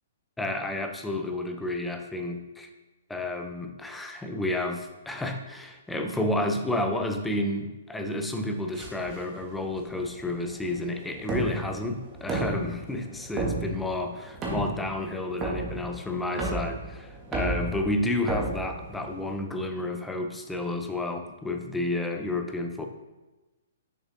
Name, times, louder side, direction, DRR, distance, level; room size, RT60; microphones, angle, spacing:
voice 1, 0.4-2.7 3.1-22.9, left 2 dB, 5° left, 5 dB, 0.6 m, -31 dB
Tapping Glass, 8.7-19.4, right 3 dB, 25° right, 1.3 m, -34 dB
6.4 x 6.0 x 2.7 m, 1.1 s
hypercardioid pair, 140°, 0 cm